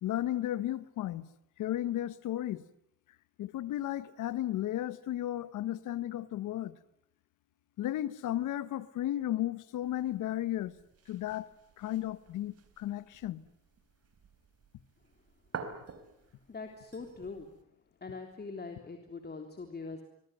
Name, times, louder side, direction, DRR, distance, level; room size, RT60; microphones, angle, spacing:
voice 1, 0.0-1.3 1.6-2.6 3.4-6.8 7.8-10.7 11.1-11.5 11.8-13.4, left 13 dB, 85° left, 1.5 m, -34 dB
sound 1, 9.8-17.6, right 6 dB, 55° right, 3.9 m, -50 dB
voice 2, 16.5-17.5 18.0-20.0, left 4 dB, 35° left, 3.6 m, -42 dB
26.0 x 21.5 x 9.3 m
cardioid pair, 90°, 30 cm